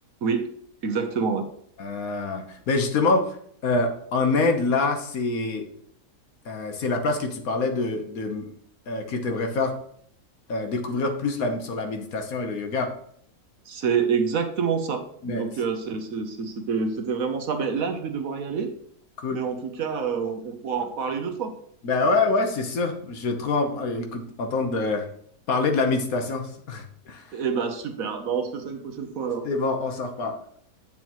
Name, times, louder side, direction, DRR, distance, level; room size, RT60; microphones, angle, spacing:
voice 1, 0.2-0.5 0.8-1.5 13.7-18.7 19.3-21.5 27.3-29.5, right 6 dB, 60° right, 7 dB, 1.1 m, -27 dB
voice 2, 1.8-3.4 3.6-5.7 6.4-8.5 8.9-9.8 10.5-12.9 15.2-15.5 19.2-19.4 21.8-25.1 25.5-27.3 29.4-30.4, left 3 dB, 60° left, 5 dB, 1.4 m, -25 dB
8.5 x 7.1 x 3.0 m, 0.64 s
omnidirectional pair, 1.8 m